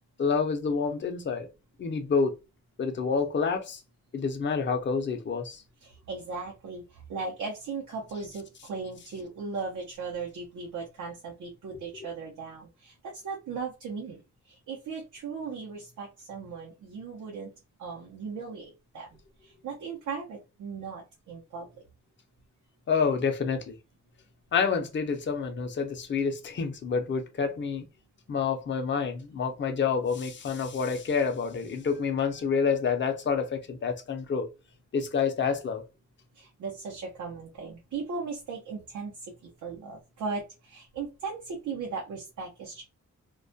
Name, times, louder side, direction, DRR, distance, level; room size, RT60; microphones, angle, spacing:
voice 1, 0.2-1.5 1.8-2.3 2.8-3.8 4.1-5.6 11.7-11.8 22.9-23.8 24.5-27.8 28.3-34.5 34.9-35.8, left 5 dB, 40° left, 0.5 m, -28 dB
voice 2, 5.8-14.2 14.5-17.5 17.8-19.1 19.4-21.7 36.3-39.1 39.6-42.8, right 4 dB, 90° right, 0.7 m, -37 dB
2.3 x 2.1 x 2.5 m
wide cardioid pair, 105°, 29 cm